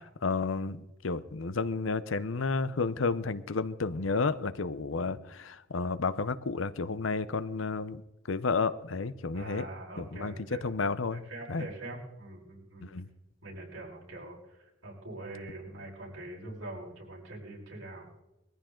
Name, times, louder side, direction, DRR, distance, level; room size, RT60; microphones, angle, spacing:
voice 1, 0.2-8.0 8.3-9.7 10.0-10.3 10.6-11.2 11.5-11.7 12.8-13.1, left 4 dB, 80° left, 15 dB, 0.8 m, -31 dB
voice 2, 9.3-10.7 11.1-12.9 13.4-14.4 14.8-18.1, right 2 dB, 85° right, -2 dB, 5.2 m, -43 dB
21.5 x 14.5 x 3.8 m, 0.96 s
head